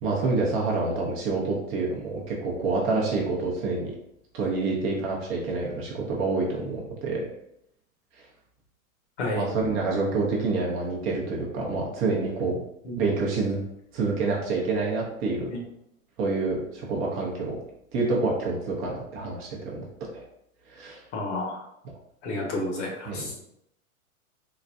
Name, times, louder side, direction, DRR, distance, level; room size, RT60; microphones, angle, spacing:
voice 1, 0.0-3.9 4.3-7.3 9.3-12.6 12.9-13.6 13.9-15.5 16.2-17.6 17.9-20.2 20.7-21.0 23.1-23.3, right 3 dB, 30° right, -2 dB, 0.7 m, -27 dB
voice 2, 21.1-21.6 22.2-23.3, left 2 dB, 55° left, 0 dB, 1.2 m, -30 dB
3.9 x 2.1 x 2.6 m, 0.78 s
hypercardioid pair, 110°, 42 cm